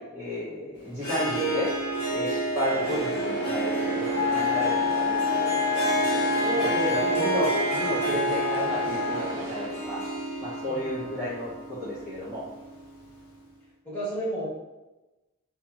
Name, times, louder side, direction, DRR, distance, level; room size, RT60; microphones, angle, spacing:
voice 1, 0.1-1.7 2.1-3.8 4.1-5.5 6.7-10.0 10.4-12.4, equal, 10° right, -13 dB, 0.7 m, -32 dB
Harp, 1.0-12.8, right 2 dB, 85° left, 0.8 m, -30 dB
sound 1, 2.7-9.7, equal, 80° right, 0.8 m, -36 dB
Wind instrument woodwind instrument, 4.1-9.3, left 6 dB, 65° left, 0.3 m, -28 dB
voice 2, 6.4-7.2 10.7-11.3 13.8-14.5, right 1 dB, 10° left, -10 dB, 1.2 m, -33 dB
2.8 x 2.6 x 2.3 m, 1.0 s
head